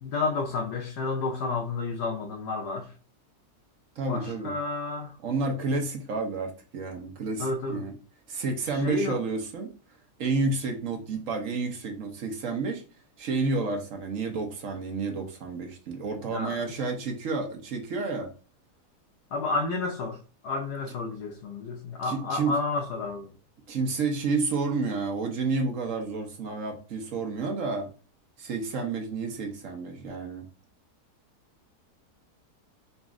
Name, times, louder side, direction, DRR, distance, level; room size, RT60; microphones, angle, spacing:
voice 1, 0.0-2.9 4.1-5.2 7.4-7.8 8.7-9.2 16.3-16.6 19.3-20.2 20.4-23.3, left 3 dB, 85° left, 1.3 m, -31 dB
voice 2, 4.0-4.5 5.2-8.0 8.3-9.7 10.2-12.8 13.2-18.3 22.0-22.6 23.7-27.9 28.4-30.5, right 3 dB, 60° right, 1.2 m, -30 dB
4.1 x 2.4 x 3.6 m
omnidirectional pair, 1.7 m